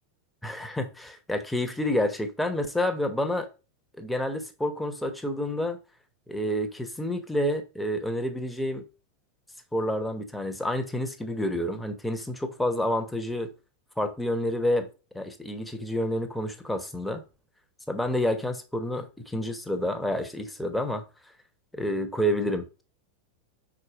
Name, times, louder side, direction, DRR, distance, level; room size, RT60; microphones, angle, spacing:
voice 1, 0.4-3.5 4.0-5.8 6.3-8.8 9.7-13.5 14.0-14.9 15.1-17.2 17.9-21.0 21.7-22.8, left 1 dB, 5° left, 1.0 m, -29 dB
5.0 x 4.5 x 4.9 m
figure-of-eight pair, 90°, 0 cm